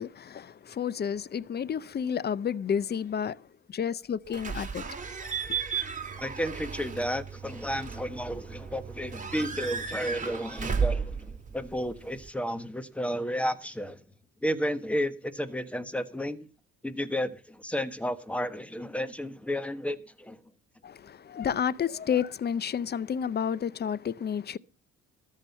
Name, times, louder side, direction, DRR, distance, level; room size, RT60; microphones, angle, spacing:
voice 1, 0.0-4.9 20.8-24.6, left 8 dB, 35° left, 0.6 m, -31 dB
Slam / Squeak / Alarm, 4.3-12.3, right 6 dB, 25° right, 2.9 m, -34 dB
voice 2, 6.2-14.0 14.4-16.5 16.8-20.4, equal, 5° left, 1.2 m, -32 dB
13.5 x 7.5 x 5.4 m
cardioid pair, 90°, 30 cm